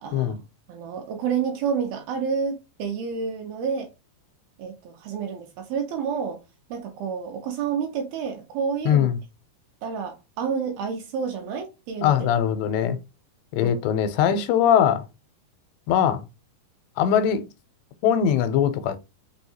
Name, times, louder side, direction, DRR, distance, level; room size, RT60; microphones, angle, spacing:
voice 1, 0.0-0.3 0.7-3.9 4.6-6.4 6.7-9.1 9.8-12.3 13.6-13.8 14.2-14.4, right 6 dB, 75° right, 2.4 m, -29 dB
voice 2, 8.9-9.2 12.0-13.0 13.5-15.1 15.9-16.2 17.0-17.4 18.0-19.1, left 9 dB, 85° left, 2.7 m, -21 dB
6.2 x 2.3 x 2.7 m
omnidirectional pair, 4.8 m